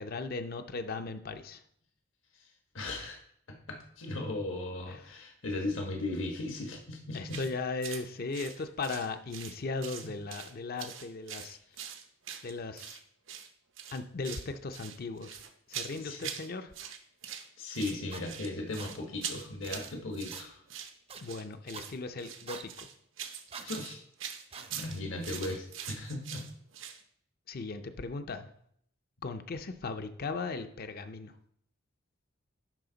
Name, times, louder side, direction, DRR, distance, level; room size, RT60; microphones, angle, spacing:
voice 1, 0.0-1.6 4.9-5.0 7.1-11.6 12.4-13.0 13.9-15.4 15.7-16.7 21.2-22.9 27.5-28.5 29.2-31.3, left 3 dB, 50° left, 8 dB, 0.5 m, -37 dB
voice 2, 2.7-3.2 3.5-7.4 10.0-10.1 16.0-16.2 17.6-20.6 23.6-24.0 24.7-26.4, left 2 dB, 80° left, 2 dB, 1.3 m, -37 dB
sound 1, 7.3-7.5 7.8-8.0 8.3-9.6 9.8-10.5 10.8-13.0 13.3-13.5 13.8-14.5 14.7-16.5 16.7-17.5 17.7-27.0, right 9 dB, 75° right, 0.7 m, -43 dB
sound 2, 18.1-18.2 18.8-18.9 19.6-19.8 20.3-20.4 21.1-21.2 21.7-21.9 22.5-22.6 23.5-23.7 24.5-24.7 25.4-25.6, right 5 dB, 30° right, 0.5 m, -44 dB
11.0 x 4.3 x 3.9 m, 0.66 s
head